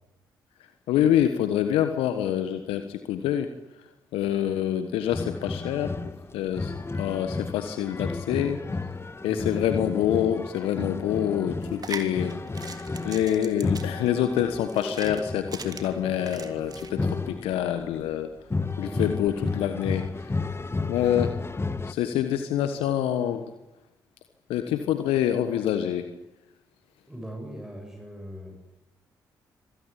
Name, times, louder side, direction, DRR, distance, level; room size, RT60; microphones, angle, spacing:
voice 1, 0.9-3.5 3.8-6.0 6.3-8.9 9.2-18.3 18.8-20.4 20.9-21.4 21.9-23.4 24.5-26.1, left 10 dB, 75° left, 9 dB, 1.3 m, -26 dB
sound 1, 5.1-18.0 18.5-21.9, left 3 dB, 25° left, 1.7 m, -32 dB
voice 2, 9.3-9.7 18.8-19.1 27.1-28.6, equal, 5° right, 1 dB, 7.8 m, -39 dB
sound 2, 11.6-16.9, right 4 dB, 40° right, 3.2 m, -41 dB
25.5 x 18.5 x 8.6 m, 0.94 s
hypercardioid pair, 40°, 10 cm